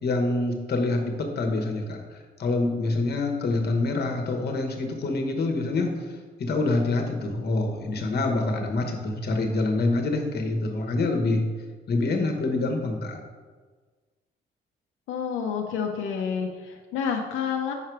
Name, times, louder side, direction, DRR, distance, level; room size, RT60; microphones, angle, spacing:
voice 1, 0.0-11.4 11.9-13.2, left 2 dB, 55° left, 3 dB, 1.1 m, -26 dB
voice 2, 15.1-17.7, left 6 dB, 90° left, 1 dB, 0.6 m, -29 dB
5.6 x 4.8 x 4.6 m, 1.5 s
cardioid pair, 90°, 20 cm